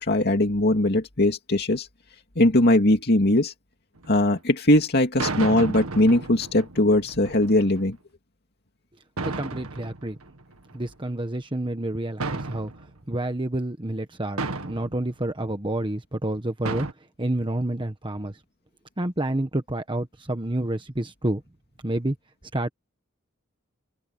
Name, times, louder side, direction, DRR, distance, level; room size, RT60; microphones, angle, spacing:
voice 1, 0.0-1.9 2.4-3.5 4.1-8.0, left 1 dB, 50° left, 2.5 m, -20 dB
sound 1, 4.0-4.2 5.2-7.8 9.2-10.9 12.2-13.2 14.4-15.1 16.6-16.9, right 3 dB, 90° right, 1.9 m, -33 dB
voice 2, 9.2-10.2 10.7-12.7 13.1-16.9 17.2-18.4 19.0-21.4 21.8-22.2 22.5-22.7, right 1 dB, 25° right, 1.3 m, -29 dB
open air
head